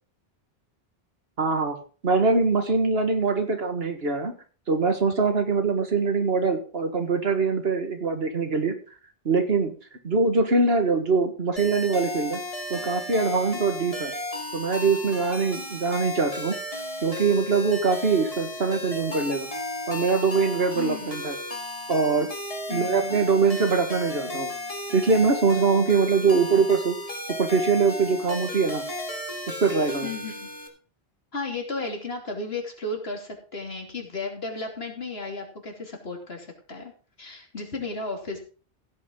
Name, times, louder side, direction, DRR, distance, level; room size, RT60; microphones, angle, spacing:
voice 1, 1.4-1.8 2.0-4.3 4.7-8.8 9.3-9.7 10.0-12.4 12.7-14.1 14.5-16.6 17.0-19.5 19.9-21.4 21.9-22.3 22.7-24.5 24.9-27.0 27.4-28.8 29.5-30.1, right 4 dB, 70° right, 6 dB, 1.9 m, -23 dB
sound 1, 11.6-30.7, left 1 dB, 35° left, 2.1 m, -34 dB
voice 2, 20.7-21.1 22.7-23.3 30.0-30.5 31.3-36.9 37.2-38.4, left 3 dB, 75° left, 2 dB, 3.2 m, -34 dB
16.0 x 8.5 x 3.8 m, 0.39 s
omnidirectional pair, 1.1 m